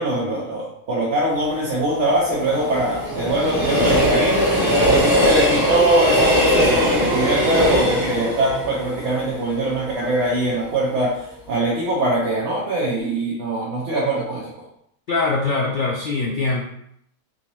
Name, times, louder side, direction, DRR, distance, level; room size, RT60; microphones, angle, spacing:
voice 1, 0.0-14.5, right 1 dB, 65° right, -5 dB, 1.0 m, -22 dB
Train, 1.3-10.4 10.8-10.9, equal, 35° right, 1.4 m, -21 dB
voice 2, 15.1-16.6, left 3 dB, 65° left, -2 dB, 0.5 m, -22 dB
3.8 x 2.7 x 2.9 m, 0.72 s
omnidirectional pair, 1.3 m